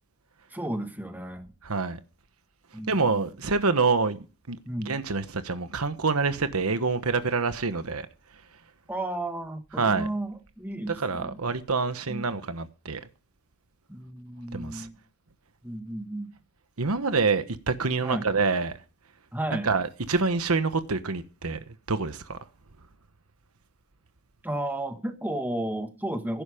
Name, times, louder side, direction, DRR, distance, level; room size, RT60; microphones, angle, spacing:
voice 1, 0.5-1.5 2.7-3.3 4.7-4.9 8.9-11.4 12.1-12.4 13.9-15.0 15.6-16.3 18.0-18.3 19.3-19.7 24.4-26.4, right 1 dB, 10° right, 1.6 m, -33 dB
voice 2, 1.6-2.0 2.9-4.2 4.5-4.6 4.9-8.1 9.8-10.1 10.9-13.0 14.5-14.9 16.8-18.7 19.5-21.6 21.9-22.4, right 4 dB, 90° right, 1.2 m, -26 dB
16.5 x 10.5 x 5.1 m
head